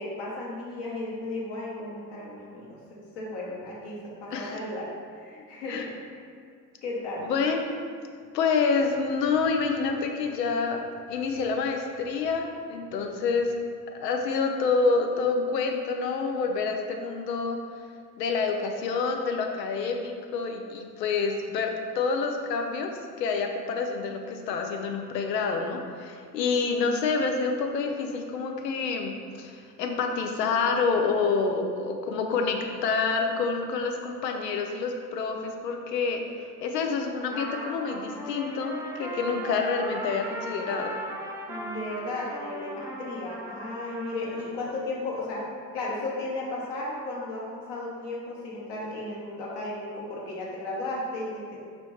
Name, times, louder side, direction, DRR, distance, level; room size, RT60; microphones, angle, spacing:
voice 1, 0.0-6.2 6.8-7.3 41.5-45.4 45.7-51.6, left 2 dB, 55° left, -4 dB, 1.2 m, -35 dB
voice 2, 4.3-4.6 5.7-5.9 7.2-7.7 8.3-13.6 14.0-17.6 18.2-22.9 23.2-40.9, left 4 dB, 80° left, 3 dB, 0.6 m, -28 dB
Trumpet, 37.3-44.5, equal, 5° right, 0.3 m, -38 dB
4.2 x 2.6 x 3.1 m, 2.2 s
figure-of-eight pair, 60°, 49 cm